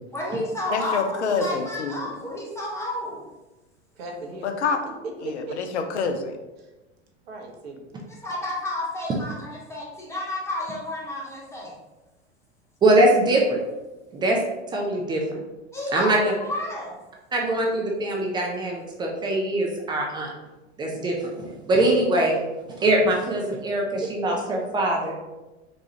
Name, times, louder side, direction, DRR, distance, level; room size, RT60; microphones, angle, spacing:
voice 1, 0.1-3.3 8.1-11.8 15.7-17.0, left 1 dB, 10° left, -4 dB, 0.9 m, -31 dB
voice 2, 0.7-1.9 4.4-4.8 5.2-6.4, left 5 dB, 75° left, 6 dB, 0.5 m, -26 dB
voice 3, 4.0-4.5 5.2-5.6 7.3-7.9 24.0-24.6, right 3 dB, 60° right, 1 dB, 0.8 m, -36 dB
voice 4, 12.8-13.6 14.1-14.4 14.7-15.2 15.9-16.3 17.3-20.3 20.8-22.4 22.8-25.1, right 1 dB, 15° right, -1 dB, 0.4 m, -22 dB
4.0 x 2.3 x 2.8 m, 1.1 s
figure-of-eight pair, 85°, 35 cm